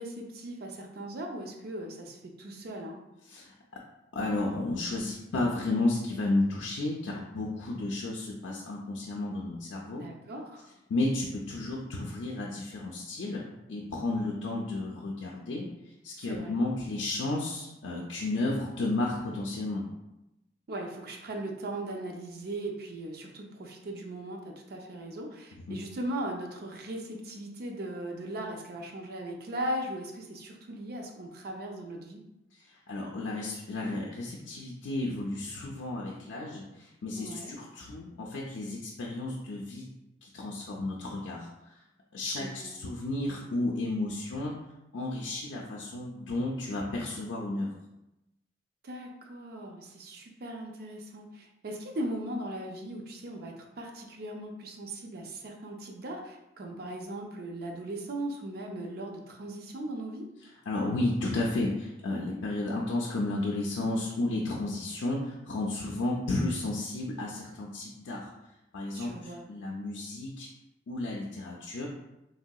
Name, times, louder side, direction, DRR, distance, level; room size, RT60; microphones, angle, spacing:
voice 1, 0.0-3.0 10.0-10.7 16.3-16.5 20.7-32.2 37.1-37.5 42.3-42.7 48.8-60.3 68.9-69.4, right 1 dB, 55° right, 1 dB, 0.4 m, -38 dB
voice 2, 4.1-10.0 10.9-13.4 13.7-15.7 16.0-19.8 25.7-25.8 32.7-39.9 40.2-41.5 42.1-44.5 44.9-47.7 60.7-68.3 68.7-70.5 70.9-71.9, left 2 dB, 90° left, -2 dB, 0.4 m, -32 dB
3.2 x 2.7 x 2.2 m, 0.93 s
head